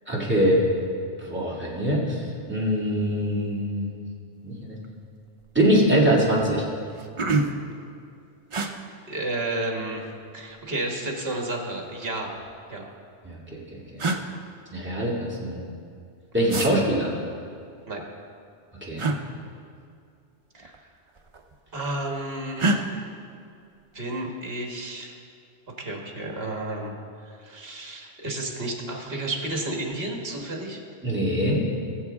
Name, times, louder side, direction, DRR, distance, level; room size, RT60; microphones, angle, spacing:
voice 1, 0.1-0.6 1.2-4.0 4.4-4.8 5.5-6.6 13.2-13.8 14.7-15.6 16.3-17.1 18.9-19.1 31.0-31.6, equal, 10° right, -6 dB, 2.4 m, -23 dB
sound 1, 4.8-5.0 5.4-5.9 6.4-6.5 6.8-7.7 8.5-8.7 9.9-10.6 11.8-12.6 13.5-13.6 14.0-14.2 16.5-16.7 19.0-19.2 20.5-20.8 21.1-21.7 22.6-22.8, right 2 dB, 35° right, 0.6 m, -27 dB
voice 2, 9.1-10.0 10.3-12.3 12.7-12.9 16.5-16.6 17.9-18.0 20.5-20.8 21.7-23.1 23.9-25.1 25.8-26.9 27.2-30.8, right 2 dB, 60° right, 1 dB, 1.8 m, -32 dB
19.5 x 7.1 x 3.6 m, 2.4 s
omnidirectional pair, 1.2 m